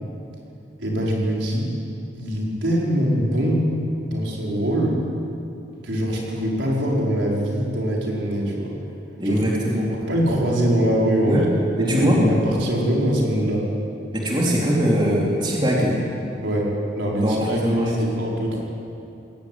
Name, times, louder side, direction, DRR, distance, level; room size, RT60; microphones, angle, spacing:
voice 1, 0.8-1.7 2.1-3.7 4.1-5.0 5.8-8.7 9.2-9.4 10.0-11.5 11.8-13.7 16.4-18.6, equal, 80° right, -3 dB, 5.1 m, -23 dB
voice 2, 9.2-9.9 11.3-11.5 11.8-12.2 14.1-16.0 17.2-17.9, equal, 25° right, -4 dB, 4.0 m, -21 dB
21.0 x 18.0 x 9.5 m, 2.7 s
head